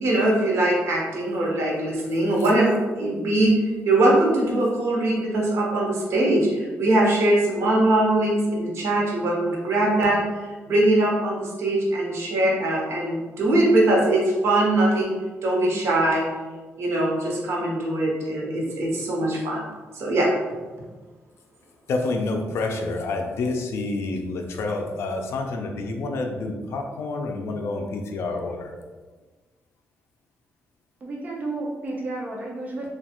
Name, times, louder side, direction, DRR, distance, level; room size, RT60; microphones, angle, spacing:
voice 1, 0.0-3.6 3.8-15.1 15.4-16.3 16.8-19.7 19.9-20.3, right 1 dB, 65° right, -3 dB, 0.9 m, -21 dB
voice 2, 21.9-28.7, left 3 dB, 65° left, 3 dB, 0.4 m, -28 dB
voice 3, 31.0-32.9, right 2 dB, 35° right, -2 dB, 0.5 m, -32 dB
3.0 x 2.3 x 2.9 m, 1.3 s
cardioid pair, 140°, 5 cm